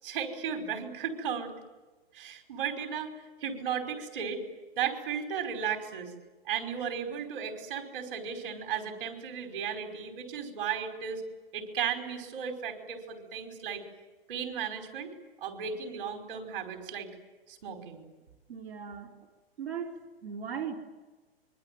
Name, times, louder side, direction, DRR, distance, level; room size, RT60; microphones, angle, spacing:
voice 1, 0.0-1.5 2.1-3.1 3.4-4.4 4.8-6.1 6.5-11.2 11.5-13.8 14.3-15.1 15.4-17.1 17.5-18.0, right 7 dB, 60° right, 5 dB, 5.3 m, -35 dB
voice 2, 18.5-19.1 19.6-20.8, right 7 dB, 90° right, 1 dB, 3.9 m, -38 dB
26.0 x 23.5 x 9.4 m, 1.2 s
hypercardioid pair, 155°, 30 cm